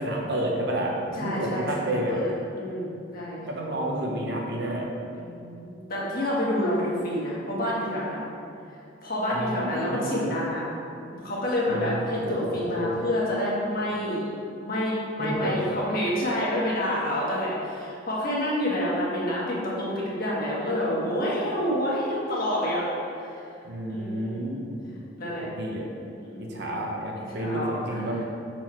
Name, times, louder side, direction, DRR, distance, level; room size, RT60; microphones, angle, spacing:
voice 1, 0.0-2.2 3.5-4.9 9.3-10.3 11.7-12.9 15.2-15.7 23.6-24.8 25.2-25.9 26.4-28.2, right 1 dB, 55° right, -1 dB, 0.9 m, -30 dB
voice 2, 1.2-3.4 5.2-8.2 9.0-10.6 11.1-14.2 14.6-22.9 23.1-23.4 23.9-24.6 25.2-25.4 26.2-26.7 27.3-28.2, left 1 dB, 45° left, -6 dB, 1.5 m, -28 dB
6.0 x 4.5 x 4.4 m, 2.5 s
head